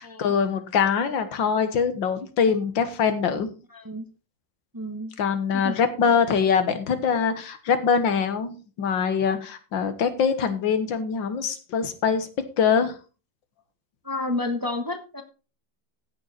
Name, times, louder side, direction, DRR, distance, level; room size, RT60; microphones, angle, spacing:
voice 1, 0.0-3.5 5.2-12.3 12.6-13.0, left 6 dB, 80° left, 10 dB, 2.0 m, -23 dB
voice 2, 3.7-4.0 4.7-5.1 5.6-5.7 14.0-15.2, left 2 dB, 15° right, 6 dB, 1.0 m, -30 dB
15.0 x 6.5 x 4.3 m, 0.34 s
omnidirectional pair, 2.0 m